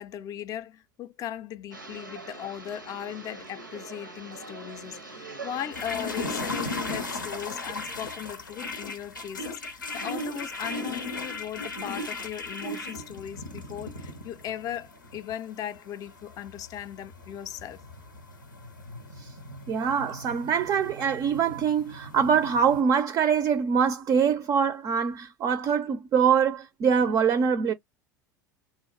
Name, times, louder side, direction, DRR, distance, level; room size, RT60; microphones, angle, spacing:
voice 1, 0.0-17.8, left 10 dB, 35° left, 0.4 m, -38 dB
sound 1, 1.7-7.2, right 3 dB, 90° right, 0.6 m, -43 dB
sound 2, 5.7-22.8, left 2 dB, 80° left, 0.6 m, -37 dB
voice 2, 19.7-27.7, right 7 dB, 30° right, 0.4 m, -24 dB
2.2 x 2.0 x 3.1 m
figure-of-eight pair, 75°, 10 cm